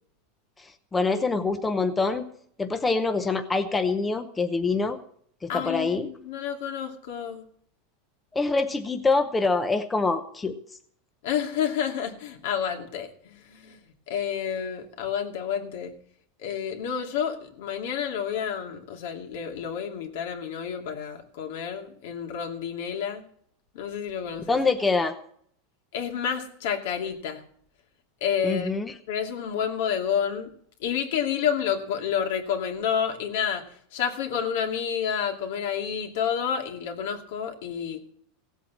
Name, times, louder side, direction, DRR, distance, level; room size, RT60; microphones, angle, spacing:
voice 1, 0.6-2.3 2.6-5.0 5.4-6.1 8.3-10.6 24.5-25.2 28.4-28.9, left 3 dB, 10° left, 0.8 m, -25 dB
voice 2, 5.5-7.5 11.2-13.8 14.1-16.0 16.4-23.2 23.7-24.6 25.9-27.4 28.2-28.7 29.1-30.5 30.8-38.0, left 8 dB, 70° left, 2.6 m, -29 dB
17.0 x 8.2 x 7.3 m
supercardioid pair, 165°, 0 cm